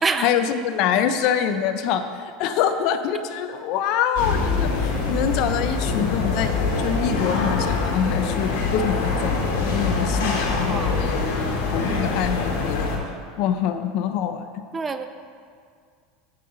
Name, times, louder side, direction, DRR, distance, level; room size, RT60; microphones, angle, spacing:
voice 1, 0.0-11.3 11.7-12.9 13.4-14.6, left 8 dB, 55° left, 9 dB, 0.7 m, -25 dB
sound 1, 4.2-13.0, left 4 dB, 85° left, 2.2 m, -24 dB
voice 2, 10.7-11.2 11.9-12.2 14.7-15.1, right 4 dB, 20° right, 9 dB, 0.5 m, -27 dB
14.5 x 5.6 x 5.2 m, 2.1 s
supercardioid pair, 140°, 0 cm